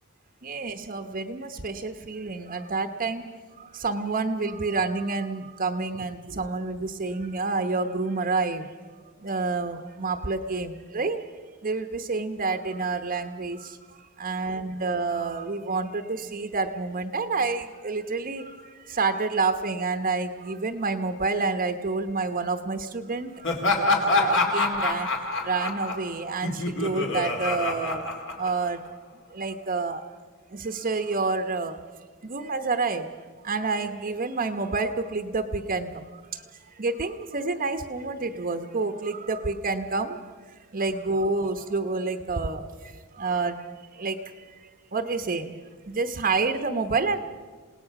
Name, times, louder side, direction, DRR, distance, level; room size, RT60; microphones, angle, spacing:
voice 1, 0.4-3.3 3.6-8.9 9.2-11.2 11.6-23.5 24.1-25.1 25.4-28.0 28.4-28.8 29.3-30.0 30.5-31.8 32.2-33.1 33.4-40.2 40.7-43.7 43.9-47.2, right 3 dB, 40° right, 7 dB, 0.9 m, -29 dB
Laughter, 23.4-28.9, left 2 dB, 60° left, 2.4 m, -26 dB
28.0 x 18.0 x 5.9 m, 1.5 s
head